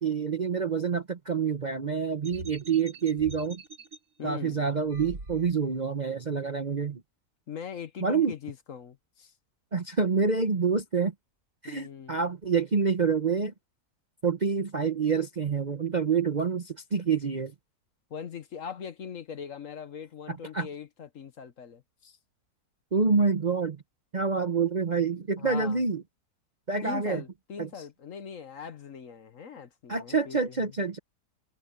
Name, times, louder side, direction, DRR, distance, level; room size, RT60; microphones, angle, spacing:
voice 1, 0.0-3.6 4.2-7.0 8.0-8.3 9.7-11.1 11.6-13.5 14.2-17.5 20.3-20.7 22.9-23.8 24.1-26.0 26.7-27.2 27.6-27.7 29.9-31.0, right 5 dB, 35° right, 0.8 m, -27 dB
sound 1, 2.2-4.0 4.9-5.8, right 2 dB, 55° right, 5.1 m, -44 dB
voice 2, 4.2-4.6 7.5-9.3 11.6-12.1 18.1-22.2 25.4-25.8 26.8-30.6, left 7 dB, 55° left, 1.3 m, -41 dB
omnidirectional pair, 1.8 m